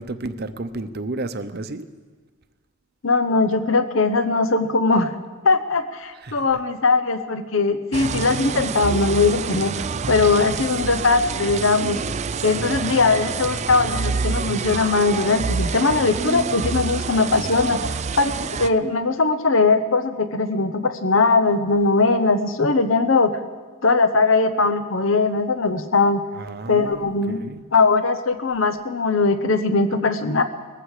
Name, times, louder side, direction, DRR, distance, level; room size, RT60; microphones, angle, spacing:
voice 1, 0.0-1.9 6.1-6.6 10.2-10.5 26.3-27.1 27.4-27.6, right 2 dB, 50° right, 10 dB, 0.7 m, -32 dB
voice 2, 3.0-5.1 5.4-9.7 10.1-12.0 12.4-23.3 23.8-26.2 26.7-27.4 27.7-30.4, left 3 dB, 65° left, 10 dB, 0.9 m, -20 dB
sound 1, 7.9-18.7, right 5 dB, 30° right, 0.4 m, -27 dB
20.0 x 14.5 x 5.0 m, 1.4 s
head